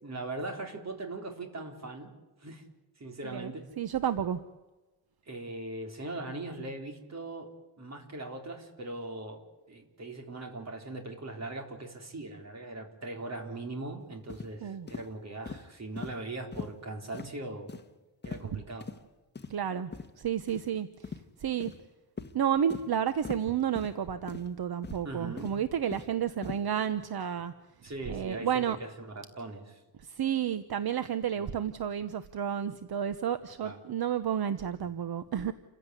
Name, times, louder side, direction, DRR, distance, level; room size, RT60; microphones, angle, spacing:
voice 1, 0.0-2.1 2.4-2.6 3.0-3.7 5.3-9.4 9.7-17.7 18.2-18.9 25.0-25.5 27.8-29.8 31.4-31.5 33.6-33.8, right 2 dB, 40° right, 3 dB, 4.2 m, -40 dB
voice 2, 3.2-4.4 14.6-14.9 19.5-19.9 20.2-21.1 21.4-21.7 22.3-27.5 28.1-28.8 30.0-35.5, right 9 dB, 70° right, 11 dB, 1.1 m, -31 dB
sound 1, 14.3-14.5 14.9-15.1 15.5-15.6 16.0-16.1 16.5-16.7 17.1-17.3 17.7-17.9 18.2-18.5 18.8-19.0 19.4-19.5 19.9-20.1 20.5-20.6 21.0-21.2 21.6-21.8 22.2-22.3 22.7-22.9 23.2-23.4 23.8-23.9 24.3-24.5 24.8-25.1 25.4-26.1 26.4-26.6, left 5 dB, 25° left, 1.5 m, -40 dB
29.0 x 16.0 x 9.8 m, 1.1 s
wide cardioid pair, 160°, 39 cm